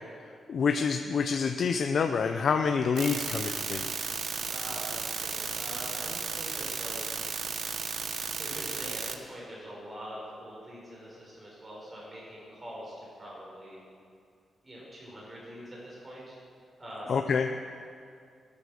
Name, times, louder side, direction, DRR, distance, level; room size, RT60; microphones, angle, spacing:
voice 1, 0.5-3.9 17.1-17.5, left 5 dB, 60° left, 5 dB, 0.7 m, -27 dB
sound 1, 3.0-9.2, right 6 dB, 70° right, 1.1 m, -34 dB
voice 2, 4.1-7.5 8.1-13.8 14.6-16.4 16.8-17.3, equal, 20° right, -5 dB, 5.3 m, -44 dB
23.0 x 8.8 x 6.4 m, 2.3 s
cardioid pair, 110°, 0 cm